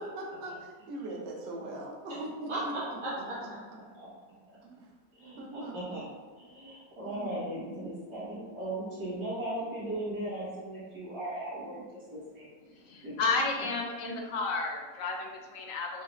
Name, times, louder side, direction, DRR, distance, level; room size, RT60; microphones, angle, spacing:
voice 1, 0.0-2.7 4.6-4.9 5.4-6.0 7.0-7.4, right 1 dB, 55° right, -1 dB, 0.8 m, -41 dB
voice 2, 2.5-3.6 3.9-4.1 5.1-6.0 6.4-12.5 13.0-13.1, right 1 dB, 70° right, -10 dB, 1.7 m, -37 dB
voice 3, 12.7-16.0, left 3 dB, 70° left, 2 dB, 0.9 m, -32 dB
5.4 x 2.0 x 3.2 m, 1.5 s
omnidirectional pair, 1.7 m